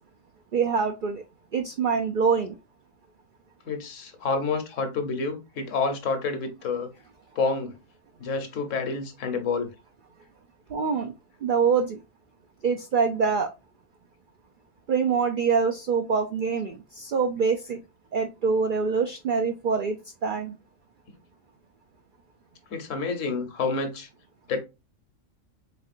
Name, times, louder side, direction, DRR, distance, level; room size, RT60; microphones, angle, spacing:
voice 1, 0.5-1.2 1.5-2.5 10.7-11.1 11.4-12.0 12.6-13.5 14.9-17.8 18.1-20.0 20.2-20.5, right 5 dB, 70° right, 0.4 m, -25 dB
voice 2, 3.7-6.9 7.3-7.8 8.2-9.7 22.7-24.1 24.5-24.6, left 4 dB, 70° left, 1.2 m, -28 dB
4.3 x 3.6 x 2.4 m
omnidirectional pair, 1.4 m